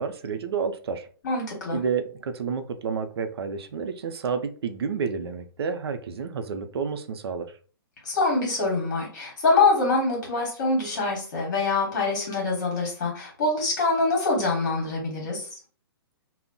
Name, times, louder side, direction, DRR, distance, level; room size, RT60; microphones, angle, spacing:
voice 1, 0.0-1.1 1.7-7.5, right 6 dB, 85° right, 8 dB, 0.5 m, -30 dB
voice 2, 1.2-1.8 8.0-15.5, left 3 dB, 50° left, -1 dB, 1.1 m, -24 dB
2.2 x 2.0 x 3.7 m, 0.40 s
hypercardioid pair, 165°, 13 cm